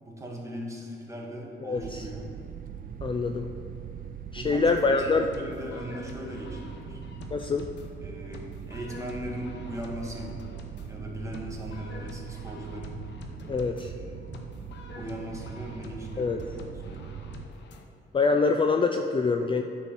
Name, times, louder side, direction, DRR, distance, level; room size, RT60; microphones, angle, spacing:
voice 1, 0.0-2.3 3.1-3.4 4.3-7.0 8.0-10.5 10.9-13.0 13.6-14.3 14.9-17.2, equal, 15° right, -1 dB, 1.7 m, -39 dB
voice 2, 1.6-2.0 3.0-3.5 4.3-5.3 7.3-7.7 13.5-13.9 16.2-16.4 18.1-19.6, left 4 dB, 25° left, 5 dB, 0.4 m, -25 dB
sound 1, 1.8-17.5, right 8 dB, 45° right, 0.5 m, -41 dB
sound 2, 4.6-17.8, left 4 dB, 65° left, 0.9 m, -47 dB
9.5 x 4.3 x 5.8 m, 2.8 s
cardioid pair, 90°, 20 cm